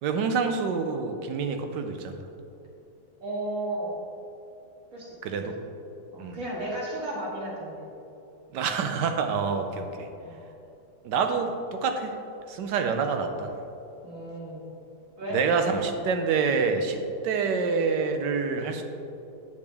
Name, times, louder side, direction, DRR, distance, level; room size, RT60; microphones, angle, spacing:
voice 1, 0.0-2.2 5.2-5.5 6.2-6.4 8.5-10.1 11.0-12.1 12.5-13.5 15.3-18.8, right 5 dB, 85° right, 6 dB, 1.3 m, -27 dB
voice 2, 3.2-4.0 4.9-5.5 6.1-7.8 10.2-10.4 14.0-14.6 15.2-15.4, right 1 dB, 50° right, -6 dB, 2.4 m, -34 dB
8.6 x 8.2 x 3.4 m, 2.9 s
omnidirectional pair, 1.8 m